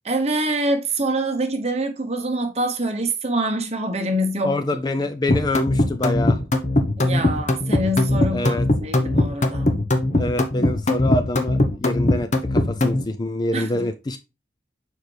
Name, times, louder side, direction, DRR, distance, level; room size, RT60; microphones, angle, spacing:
voice 1, 0.0-4.6 5.0-5.1 7.0-9.8 13.5-13.9, right 1 dB, 35° right, 1.0 m, -25 dB
voice 2, 4.4-6.4 8.3-8.6 10.2-14.2, left 2 dB, 25° left, 0.4 m, -26 dB
sound 1, 5.3-13.0, left 1 dB, 40° left, 0.9 m, -20 dB
6.5 x 4.6 x 3.3 m
head